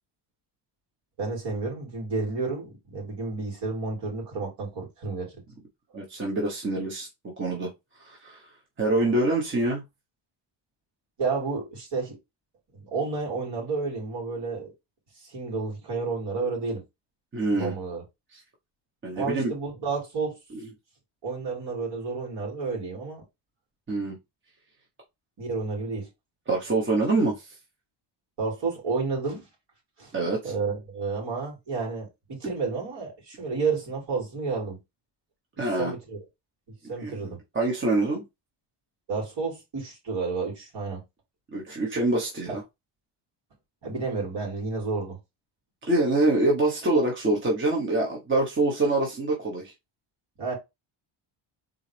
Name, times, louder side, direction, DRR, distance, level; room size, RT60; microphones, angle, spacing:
voice 1, 1.2-5.3 9.0-9.1 11.2-12.1 12.7-14.7 15.3-16.8 17.5-18.0 19.1-20.4 21.2-23.2 25.4-26.1 28.4-29.4 30.0-30.1 30.4-34.8 35.8-36.2 36.9-37.4 39.1-41.0 43.8-45.2 50.4-50.5, right 4 dB, 55° right, 2.9 m, -31 dB
voice 2, 5.9-7.1 7.4-7.7 8.0-8.4 8.8-9.8 17.3-17.7 18.3-18.4 19.0-19.5 20.5-20.7 23.9-24.2 26.5-27.5 30.1-30.5 35.6-35.9 37.0-37.1 37.5-38.2 41.5-42.6 45.8-49.7, right 2 dB, 25° right, 1.0 m, -25 dB
4.0 x 3.9 x 3.3 m
cardioid pair, 170°, 50 cm